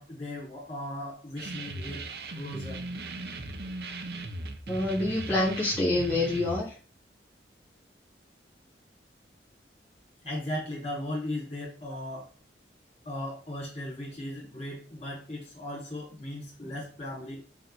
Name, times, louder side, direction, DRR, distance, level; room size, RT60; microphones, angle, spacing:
voice 1, 0.0-2.1 2.3-2.8 10.2-12.3 13.0-17.4, left 1 dB, 35° left, -3 dB, 4.6 m, -37 dB
sound 1, 1.4-6.6, right 2 dB, 60° right, 1.1 m, -38 dB
voice 2, 4.7-6.7, left 2 dB, 10° left, -9 dB, 2.9 m, -27 dB
7.0 x 6.5 x 4.6 m, 0.38 s
head